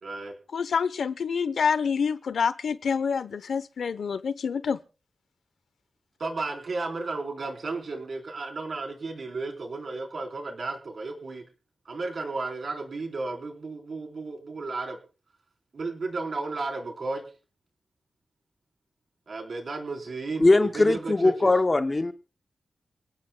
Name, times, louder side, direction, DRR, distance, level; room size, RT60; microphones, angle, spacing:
voice 1, 0.0-0.3 6.2-11.4 11.9-15.0 15.7-17.2 19.3-21.5, right 3 dB, 50° right, 4.0 m, -33 dB
voice 2, 0.5-4.8, left 6 dB, 80° left, 0.8 m, -27 dB
voice 3, 20.4-22.1, left 2 dB, 25° left, 0.7 m, -20 dB
28.5 x 17.5 x 2.3 m
wide cardioid pair, 165°, 0 cm